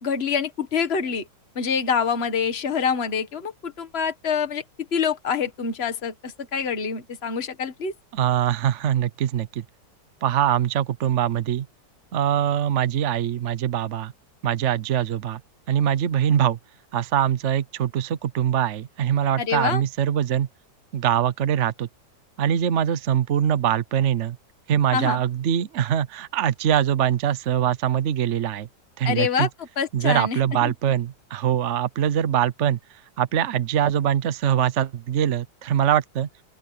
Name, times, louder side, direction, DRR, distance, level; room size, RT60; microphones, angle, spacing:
voice 1, 0.0-1.2 1.6-4.6 4.9-7.9 19.4-19.8 24.9-25.2 29.0-30.7, left 6 dB, 35° left, 1.9 m, -26 dB
voice 2, 8.1-9.6 10.2-11.7 12.1-14.1 14.4-15.4 15.7-16.6 16.9-20.5 20.9-21.9 22.4-24.4 24.7-28.7 29.0-29.5 29.9-32.8 33.2-36.3, right 10 dB, 55° right, 0.8 m, -23 dB
open air
omnidirectional pair, 2.0 m